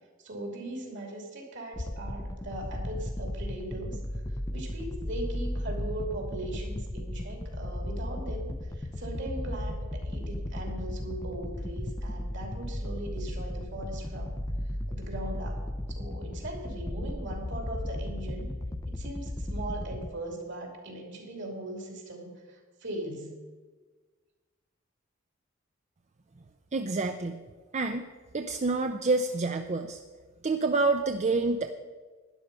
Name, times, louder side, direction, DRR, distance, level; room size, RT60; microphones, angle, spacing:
voice 1, 0.2-4.0 4.3-14.4 14.9-18.5 18.9-23.3, right 1 dB, 65° right, 2 dB, 2.9 m, -39 dB
sound 1, 1.7-20.1, left 1 dB, 15° left, 0.5 m, -35 dB
voice 2, 26.7-27.4 27.7-28.0 28.3-30.0 30.4-31.7, right 3 dB, 35° right, 6 dB, 0.5 m, -27 dB
12.0 x 10.5 x 5.4 m, 1.4 s
head